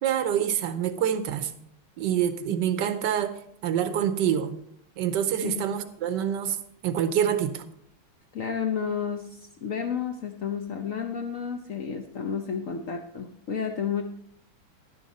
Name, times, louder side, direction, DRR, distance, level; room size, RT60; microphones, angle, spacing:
voice 1, 0.0-1.5 2.0-4.6 5.0-6.6 6.8-7.6, right 9 dB, 65° right, 1.1 m, -26 dB
voice 2, 5.4-5.7 8.3-14.0, left 7 dB, 70° left, 0.7 m, -31 dB
11.0 x 10.5 x 4.1 m
omnidirectional pair, 2.4 m